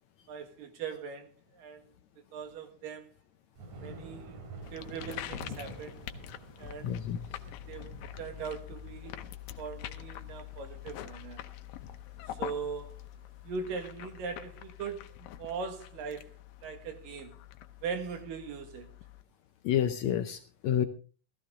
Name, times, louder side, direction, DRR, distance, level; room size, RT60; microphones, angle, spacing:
voice 1, 0.3-1.9 2.3-3.1 3.8-4.4 4.7-6.0 6.6-7.0 7.4-9.2 9.6-11.4 12.3-13.0 13.4-16.3 16.6-17.4 17.8-18.9, right 5 dB, 80° right, 3.5 m, -40 dB
Thunder, 3.6-14.7, right 2 dB, 65° right, 3.8 m, -50 dB
sound 1, 4.6-19.2, left 12 dB, 90° left, 2.6 m, -45 dB
voice 2, 6.8-7.2 19.6-20.9, left 10 dB, 75° left, 1.7 m, -29 dB
15.0 x 14.5 x 3.7 m
omnidirectional pair, 3.9 m